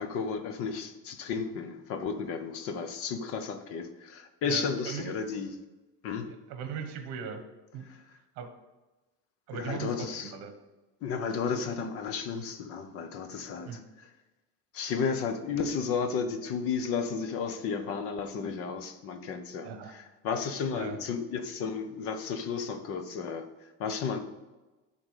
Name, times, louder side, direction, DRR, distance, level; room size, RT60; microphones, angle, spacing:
voice 1, 0.0-5.5 6.0-6.3 7.8-8.0 9.5-10.3 11.0-14.1 14.7-24.2, left 5 dB, 45° left, 8 dB, 0.8 m, -33 dB
voice 2, 4.4-5.1 6.2-7.4 7.7-7.9 8.3-8.5 9.5-10.5 13.6-13.8 19.6-19.9 20.7-21.0, right 7 dB, 55° right, 7 dB, 1.2 m, -39 dB
11.0 x 3.9 x 6.5 m, 1.1 s
cardioid pair, 180°, 33 cm